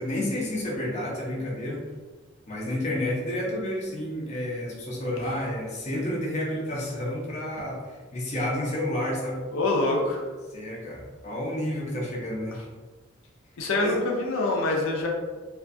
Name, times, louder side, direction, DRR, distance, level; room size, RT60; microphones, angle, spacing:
voice 1, 0.0-1.8 2.5-9.4 10.5-12.6 13.8-14.0, left 1 dB, 35° left, -3 dB, 0.5 m, -30 dB
voice 2, 9.5-10.2 13.6-15.1, left 2 dB, 85° left, 0 dB, 0.5 m, -25 dB
2.5 x 2.3 x 2.5 m, 1.3 s
head